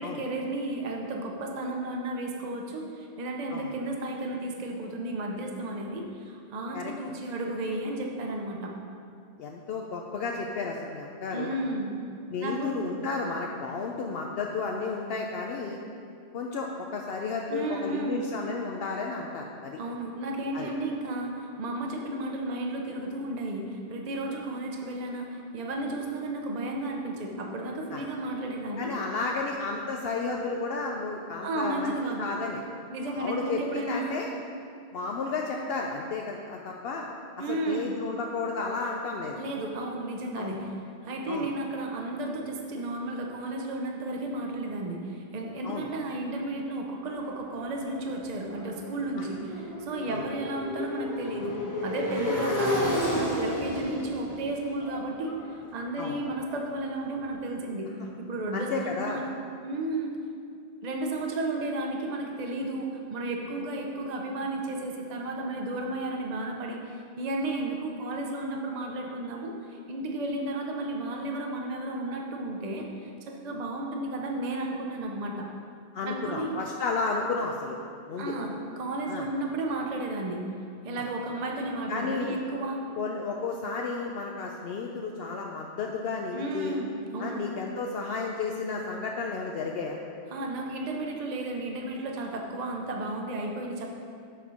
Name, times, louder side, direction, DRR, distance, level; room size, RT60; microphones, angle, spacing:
voice 1, 0.0-8.7 11.3-12.0 12.4-12.9 17.5-18.3 19.8-28.9 31.4-32.3 32.9-34.2 37.4-38.0 39.4-40.8 41.0-51.5 51.8-57.9 58.2-59.3 59.6-60.1 60.8-75.5 76.1-76.5 78.2-80.5 80.8-82.8 86.3-87.5 90.3-93.9, right 2 dB, 45° right, 1 dB, 0.7 m, -33 dB
voice 2, 9.4-11.6 12.3-15.8 16.3-19.8 20.5-20.7 27.9-28.0 28.8-31.9 32.2-32.6 33.1-34.3 34.9-37.1 37.5-39.4 40.4-40.6 41.3-41.5 45.6-45.9 49.2-49.3 50.1-50.2 52.4-52.5 56.0-56.2 58.5-59.2 75.9-77.8 78.1-78.3 79.1-79.3 81.9-82.4 83.0-86.8 87.2-90.0, left 4 dB, 65° left, 0 dB, 0.7 m, -32 dB
Motorcycle, 47.2-57.1, left 1 dB, 20° left, 1.1 m, -33 dB
7.2 x 4.3 x 5.5 m, 2.4 s
omnidirectional pair, 1.1 m